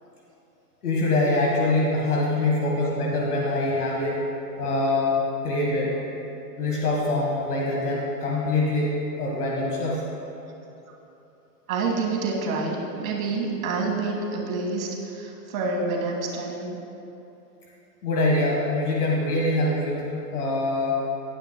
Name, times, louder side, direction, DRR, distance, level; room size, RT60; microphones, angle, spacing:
voice 1, 0.8-4.2 4.6-5.9 6.6-8.9 9.2-10.0 18.0-20.0 20.3-21.0, left 2 dB, 65° left, -3 dB, 1.8 m, -24 dB
voice 2, 11.7-16.8, right 3 dB, 55° right, -1 dB, 2.1 m, -28 dB
16.0 x 9.4 x 2.3 m, 3.0 s
hypercardioid pair, 155°, 49 cm